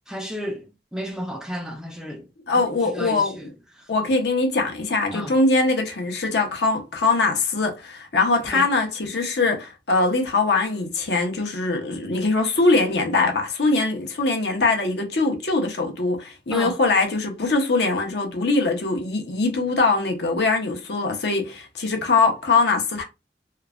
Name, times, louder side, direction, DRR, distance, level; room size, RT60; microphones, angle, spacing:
voice 1, 0.1-2.3 2.9-3.5 3.8-3.9 5.1-5.4 8.5-8.7 16.5-16.8, equal, 5° right, 0.3 m, -32 dB
voice 2, 2.5-3.5 3.9-23.0, left 3 dB, 65° left, 0.8 m, -22 dB
3.0 x 2.2 x 2.4 m
head